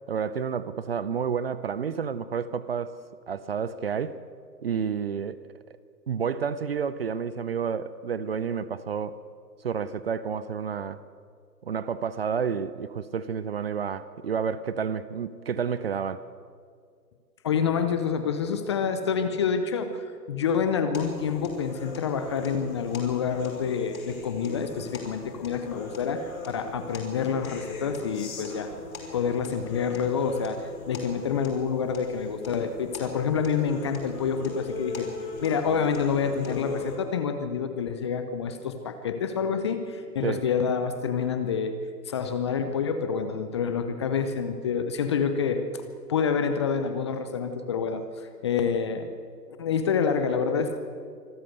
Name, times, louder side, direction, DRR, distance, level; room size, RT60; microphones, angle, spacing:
voice 1, 0.1-3.0 3.3-4.2 4.6-5.4 6.1-9.2 9.6-11.0 11.6-16.3 36.5-36.6 40.2-40.4, right 6 dB, 35° right, 0.7 m, -30 dB
voice 2, 17.4-28.7 29.1-35.1 35.4-45.6 46.1-49.1 49.6-50.8, left 6 dB, 15° left, 0.7 m, -27 dB
sound 1, 20.9-37.0, left 4 dB, 55° left, 5.9 m, -40 dB
25.5 x 13.5 x 7.9 m
figure-of-eight pair, 135°, 50 cm